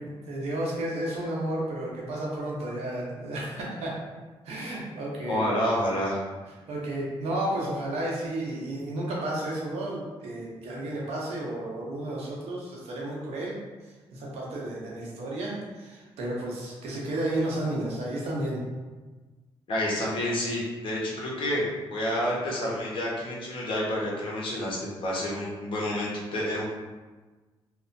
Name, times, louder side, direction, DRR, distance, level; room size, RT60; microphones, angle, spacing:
voice 1, 0.0-4.0 4.4-5.4 6.7-13.6 14.1-18.6, right 1 dB, 85° right, -4 dB, 0.7 m, -32 dB
voice 2, 5.3-6.2 19.7-26.6, left 1 dB, 55° left, -5 dB, 0.9 m, -29 dB
2.9 x 2.1 x 2.5 m, 1.3 s
cardioid pair, 85°, 10 cm